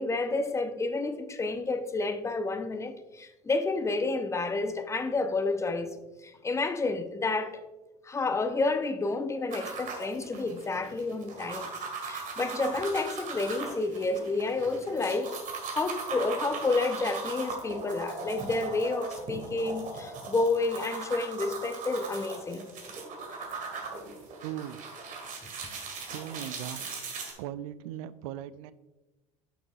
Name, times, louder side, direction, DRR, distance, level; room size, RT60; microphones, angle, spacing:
voice 1, 0.0-5.9 6.2-7.6 8.0-11.7 12.0-22.7, left 3 dB, 15° left, 0.6 m, -30 dB
sound 1, 9.5-27.3, right 4 dB, 45° right, 1.8 m, -39 dB
voice 2, 24.4-24.8 26.1-27.0 27.4-28.7, right 11 dB, 65° right, 0.4 m, -39 dB
9.2 x 6.0 x 2.4 m
hypercardioid pair, 75°, 19 cm